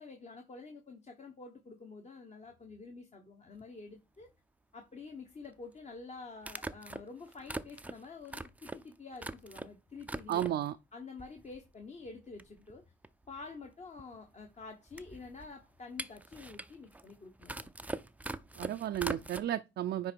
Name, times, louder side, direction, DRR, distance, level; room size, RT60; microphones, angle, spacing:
voice 1, 0.0-4.3 4.7-10.5 10.9-12.8 13.3-17.7, left 4 dB, 35° left, 1.2 m, -48 dB
sound 1, 3.6-3.7 5.4-5.5 6.4-9.7 10.0-10.7 11.2-11.8 12.1-12.2 12.4-19.4, right 2 dB, 5° right, 0.5 m, -43 dB
voice 2, 10.3-10.8 18.6-20.1, right 12 dB, 60° right, 0.5 m, -33 dB
9.7 x 3.3 x 4.5 m
cardioid pair, 90°, 20 cm